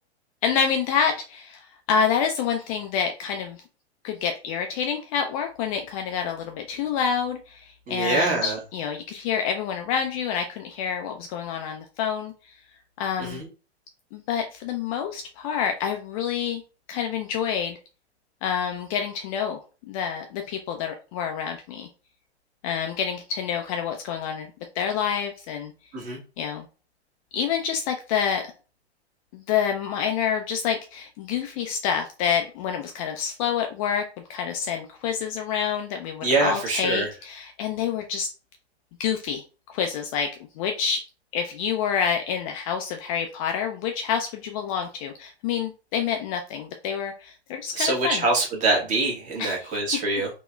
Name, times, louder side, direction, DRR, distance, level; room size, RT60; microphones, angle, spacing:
voice 1, 0.4-3.6 4.0-12.3 13.0-13.4 14.1-16.6 16.9-17.8 18.4-19.6 19.9-21.9 22.6-24.5 24.8-25.7 26.4-26.6 27.3-28.4 29.3-34.0 34.3-38.3 39.0-39.4 39.7-40.3 40.6-41.0 41.3-48.2 49.4-49.8, left 7 dB, 30° left, 4 dB, 0.5 m, -27 dB
voice 2, 7.9-8.6 13.2-13.5 25.9-26.2 36.2-37.1 47.7-50.3, right 3 dB, 25° right, -1 dB, 1.4 m, -24 dB
3.8 x 2.9 x 2.3 m, 0.34 s
figure-of-eight pair, 105°, 33 cm